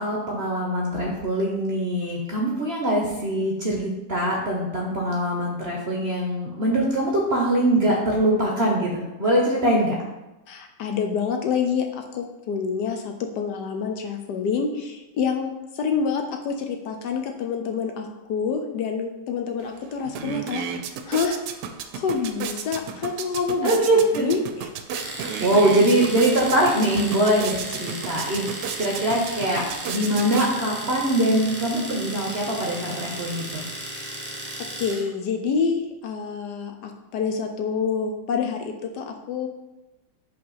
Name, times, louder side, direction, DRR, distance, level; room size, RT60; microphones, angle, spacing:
voice 1, 0.0-10.0 23.6-24.3 25.4-33.6, right 1 dB, 45° right, -1 dB, 0.8 m, -23 dB
voice 2, 10.5-20.7 21.1-21.4 21.9-23.8 24.1-24.7 25.4-25.5 34.6-39.5, left 6 dB, 70° left, 4 dB, 1.2 m, -27 dB
sound 1, 19.6-19.7 20.0-30.9, right 7 dB, 75° right, 1.1 m, -34 dB
Domestic sounds home sounds, 24.9-35.1, right 1 dB, 15° right, 0.4 m, -35 dB
5.4 x 4.2 x 5.5 m, 1.0 s
omnidirectional pair, 2.0 m